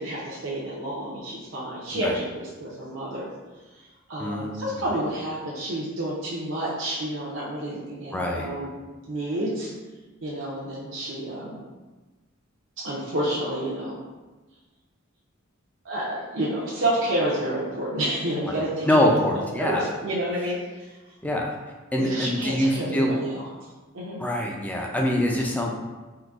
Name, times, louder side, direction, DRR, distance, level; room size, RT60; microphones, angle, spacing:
voice 1, 0.0-2.2 2.6-3.3 4.1-8.7 9.1-9.7 10.2-11.6 12.8-14.0 15.8-19.2 19.6-20.9 22.0-23.4 23.9-24.2, right 1 dB, 70° right, -6 dB, 0.6 m, -29 dB
voice 2, 4.2-4.8 8.1-8.5 18.5-19.9 21.2-21.6 21.9-23.2 24.2-25.7, left 1 dB, 10° left, 0 dB, 0.3 m, -24 dB
3.8 x 2.6 x 2.4 m, 1.2 s
head